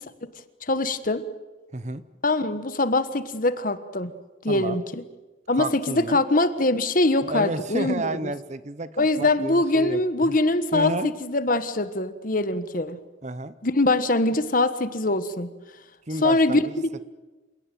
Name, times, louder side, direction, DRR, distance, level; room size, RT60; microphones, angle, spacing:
voice 1, 0.6-1.2 2.2-4.1 4.4-5.0 5.5-8.3 9.0-13.0 13.6-15.5 16.2-17.0, left 2 dB, 45° left, 12 dB, 1.4 m, -23 dB
voice 2, 4.5-4.8 5.5-6.2 7.2-10.3 10.7-11.1 13.2-13.6 16.1-16.6, right 2 dB, 35° right, 14 dB, 0.9 m, -31 dB
28.0 x 17.5 x 9.2 m, 1.2 s
head